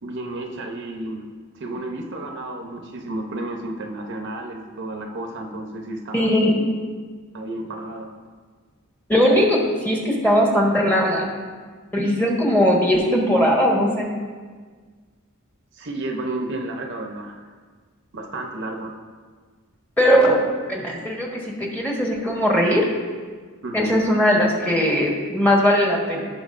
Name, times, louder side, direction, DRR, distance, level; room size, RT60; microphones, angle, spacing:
voice 1, 0.0-6.3 7.3-8.1 15.7-17.4 18.1-18.9 23.6-24.0, right 2 dB, 55° right, 3 dB, 0.8 m, -32 dB
voice 2, 6.1-6.8 9.1-11.3 11.9-14.1 20.0-20.4 20.7-21.3 21.6-22.9 23.7-26.2, equal, 10° left, -2 dB, 1.4 m, -19 dB
16.5 x 5.8 x 2.6 m, 1.5 s
head